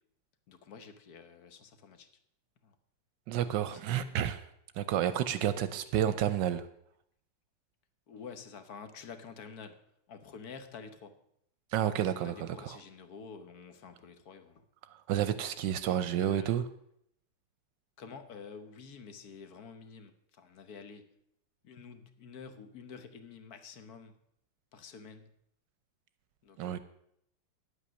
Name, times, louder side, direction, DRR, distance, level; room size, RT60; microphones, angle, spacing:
voice 1, 0.5-2.1 2.6-2.7 3.4-4.3 8.1-9.8 10.1-11.2 12.0-14.6 15.8-16.5 18.0-21.1 21.6-24.2 24.7-25.3 26.4-26.8, left 5 dB, 60° left, 1.3 m, -49 dB
voice 2, 3.3-4.4 4.8-6.7 11.7-12.5 15.1-16.6 26.6-26.8, right 10 dB, 75° right, 1.2 m, -30 dB
10.0 x 8.5 x 6.2 m
omnidirectional pair, 2.0 m